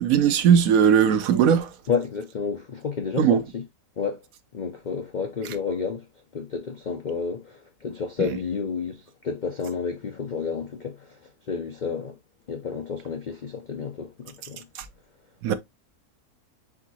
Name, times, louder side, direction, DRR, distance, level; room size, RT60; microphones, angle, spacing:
voice 1, 0.0-1.7 3.2-3.4 8.2-8.4 14.7-14.8 15.4-15.5, right 8 dB, 75° right, 1.0 m, -19 dB
voice 2, 1.9-3.6 4.0-4.2 4.5-6.0 6.3-11.2 11.5-12.2 12.5-14.6, left 5 dB, 70° left, 0.4 m, -30 dB
4.9 x 3.6 x 2.7 m
omnidirectional pair, 1.6 m